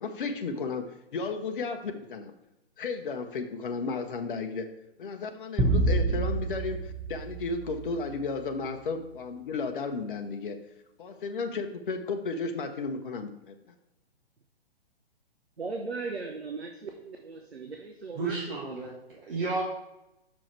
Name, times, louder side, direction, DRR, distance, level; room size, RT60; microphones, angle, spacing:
voice 1, 0.0-2.3 2.8-4.7 5.0-10.6 11.0-13.7, left 4 dB, 55° left, 6 dB, 0.7 m, -34 dB
sound 1, 5.6-8.2, right 2 dB, 5° right, 0.9 m, -28 dB
voice 2, 15.6-18.6, right 4 dB, 85° right, 3 dB, 0.9 m, -38 dB
voice 3, 18.1-19.6, right 3 dB, 60° right, -4 dB, 1.5 m, -32 dB
6.2 x 4.8 x 4.4 m, 0.92 s
figure-of-eight pair, 125°, 31 cm